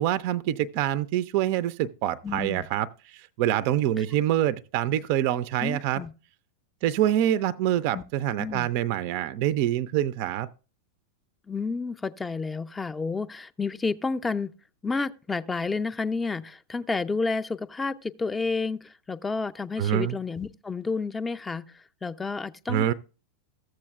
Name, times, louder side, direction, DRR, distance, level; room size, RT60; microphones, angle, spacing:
voice 1, 0.0-6.0 6.8-10.5 19.8-20.2 22.7-22.9, right 12 dB, 45° right, 0.4 m, -26 dB
voice 2, 2.2-2.7 4.0-4.1 5.6-6.1 7.9-8.0 8.4-8.7 11.5-14.5 14.8-22.9, left 4 dB, 10° left, 0.4 m, -30 dB
14.5 x 7.6 x 2.3 m
figure-of-eight pair, 90°, 0 cm